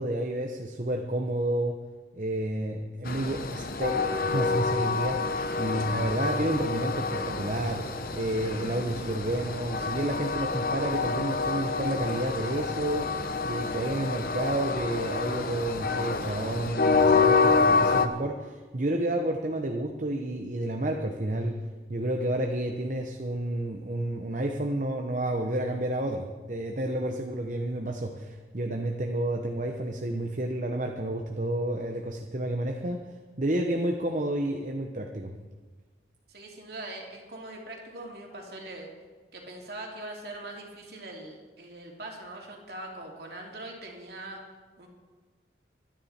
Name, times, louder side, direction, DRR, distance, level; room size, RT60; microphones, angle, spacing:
voice 1, 0.0-1.8 2.1-7.9 8.1-13.1 13.5-21.6 21.9-33.0 33.4-35.3, right 1 dB, 40° right, 3 dB, 1.0 m, -30 dB
Train, 3.1-18.1, left 4 dB, 50° left, 0.9 m, -27 dB
voice 2, 36.3-38.9 39.3-44.4 44.8-44.9, right 2 dB, 55° right, 0 dB, 3.0 m, -42 dB
23.5 x 10.5 x 4.4 m, 1.4 s
head